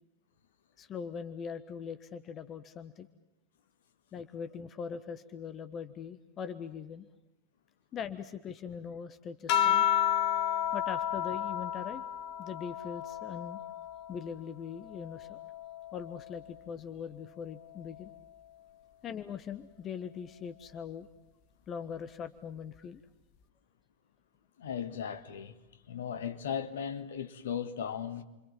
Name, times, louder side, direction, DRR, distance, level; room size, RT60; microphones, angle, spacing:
voice 1, 0.8-3.1 4.1-7.1 7.9-9.9 10.7-12.0 12.4-13.6 14.1-15.4 15.9-18.1 19.0-21.1 21.7-23.0, left 7 dB, 30° left, 1.4 m, -41 dB
sound 1, 9.5-14.3 14.7-16.5 17.7-18.2, left 10 dB, 45° left, 2.0 m, -32 dB
voice 2, 24.6-28.2, left 8 dB, 60° left, 2.1 m, -37 dB
30.0 x 25.5 x 7.5 m
figure-of-eight pair, 90°, 0 cm